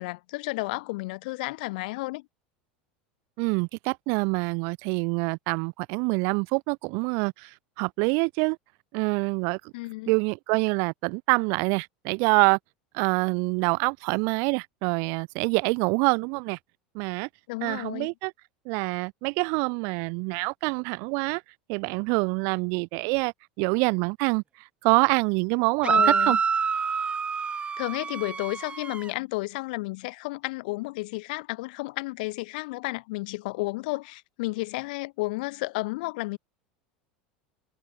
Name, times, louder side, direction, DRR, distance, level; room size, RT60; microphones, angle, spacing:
voice 1, 0.0-2.2 9.7-10.1 17.5-18.1 25.8-26.4 27.8-36.4, left 23 dB, 65° left, 3.7 m, -32 dB
voice 2, 3.4-7.5 7.8-8.6 8.9-9.6 10.1-12.6 12.9-16.6 16.9-17.3 17.6-18.3 18.7-21.4 21.7-24.4 24.8-26.4, right 35 dB, 60° right, 0.7 m, -26 dB
sound 1, 25.8-29.1, right 6 dB, 20° right, 0.7 m, -26 dB
hypercardioid pair, 85°, 5 cm